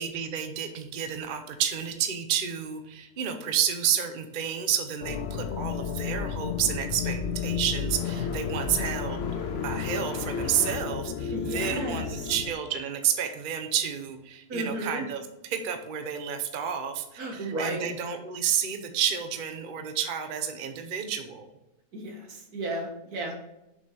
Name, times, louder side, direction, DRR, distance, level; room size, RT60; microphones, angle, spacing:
voice 1, 0.0-9.2 9.6-21.5, right 9 dB, 45° right, 6 dB, 0.8 m, -30 dB
sound 1, 5.0-12.5, left 6 dB, 65° left, 0.6 m, -32 dB
sound 2, 7.3-14.2 14.5-15.5 16.5-16.6 17.4-17.5 19.3-19.4, left 5 dB, 50° left, 1.0 m, -43 dB
voice 2, 11.3-12.3 14.5-15.0 17.2-17.9 21.9-23.4, right 1 dB, 75° right, 1 dB, 2.0 m, -33 dB
7.1 x 5.5 x 4.2 m, 0.92 s
omnidirectional pair, 1.6 m